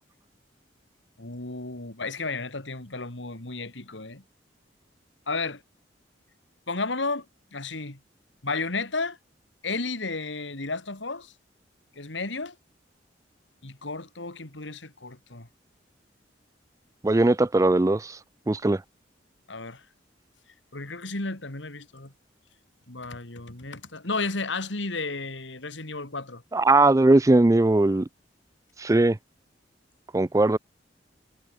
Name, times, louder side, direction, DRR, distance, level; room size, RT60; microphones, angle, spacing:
voice 1, 1.2-4.2 5.3-5.6 6.7-7.3 7.5-8.0 8.4-9.2 9.6-11.3 11.9-12.5 13.6-15.5 19.5-19.8 20.7-22.1 22.9-26.4, left 3 dB, 90° left, 2.9 m, -33 dB
voice 2, 17.0-18.2 18.5-18.8 26.5-28.1 28.8-29.2 30.1-30.6, right 2 dB, 20° right, 0.4 m, -19 dB
head